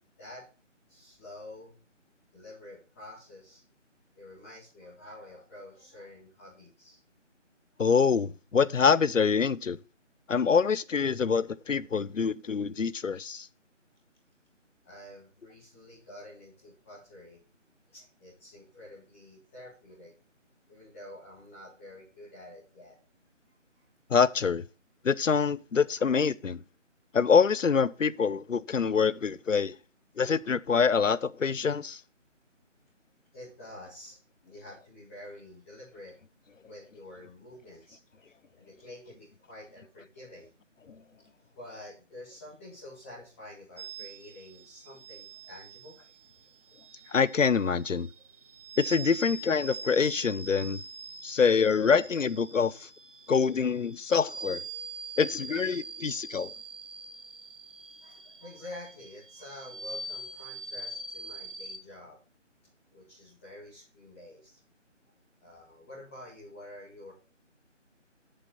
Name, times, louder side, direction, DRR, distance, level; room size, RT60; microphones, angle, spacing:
voice 1, 0.9-1.7 2.3-3.6 4.2-7.0 7.7-7.8 14.8-17.4 17.9-20.1 20.7-23.0 33.3-34.2 34.4-36.1 36.6-38.0 38.3-40.5 41.5-46.0 58.0-62.2 62.9-64.6 65.4-67.1, left 1 dB, 10° left, 1.8 m, -48 dB
voice 2, 7.8-9.8 10.3-13.5 24.1-24.6 25.0-26.6 27.1-29.7 30.2-32.0 47.1-48.1 48.8-50.8 51.2-52.9 53.3-54.6 55.2-56.5, left 6 dB, 85° left, 0.7 m, -25 dB
sound 1, 43.8-61.8, right 3 dB, 45° right, 1.3 m, -43 dB
7.8 x 6.8 x 4.0 m
figure-of-eight pair, 160°, 37 cm